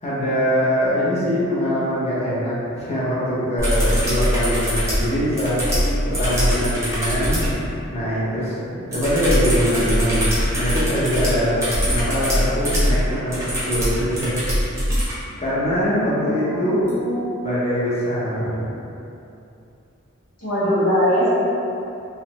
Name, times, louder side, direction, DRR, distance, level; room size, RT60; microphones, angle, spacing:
voice 1, 0.0-5.6 6.0-7.5 7.9-14.4 15.4-16.8 17.4-18.7, equal, 30° left, -9 dB, 0.7 m, -23 dB
sound 1, 3.6-7.5 8.9-15.1 16.9-17.0, equal, 15° right, 0.6 m, -22 dB
voice 2, 5.6-5.9 16.3-17.6 20.4-21.3, equal, 85° left, -12 dB, 1.1 m, -23 dB
3.2 x 2.0 x 2.8 m, 2.8 s
head